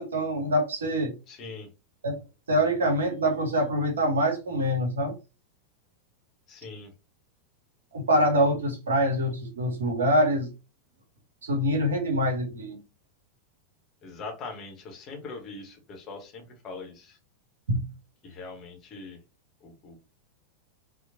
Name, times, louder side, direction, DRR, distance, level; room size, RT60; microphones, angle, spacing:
voice 1, 0.0-1.1 2.0-2.2 2.5-5.2 7.9-10.5 11.4-12.8 17.7-17.8, equal, 70° right, 0.7 m, -25 dB
voice 2, 1.3-1.7 6.5-6.9 14.0-17.2 18.2-19.2 19.6-20.0, left 3 dB, 30° left, 0.8 m, -41 dB
2.8 x 2.0 x 2.5 m
figure-of-eight pair, 90°, 0 cm